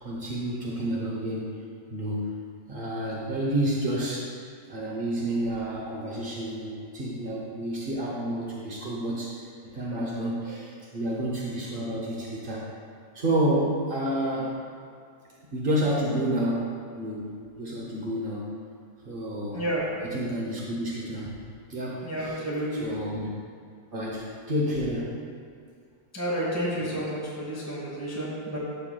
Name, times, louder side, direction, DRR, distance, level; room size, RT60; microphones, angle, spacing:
voice 1, 0.0-1.5 1.9-2.3 2.7-4.3 4.7-9.5 9.7-12.6 13.1-14.5 15.5-16.7 16.9-18.5 19.1-19.6 20.1-21.4 21.7-22.4 22.8-23.3 23.9-25.1, right 1 dB, 65° right, -4 dB, 0.5 m, -29 dB
voice 2, 19.5-20.1 22.0-22.9 26.1-28.6, right 1 dB, 10° right, -6 dB, 0.8 m, -30 dB
12.0 x 5.7 x 2.3 m, 2.2 s
omnidirectional pair, 2.2 m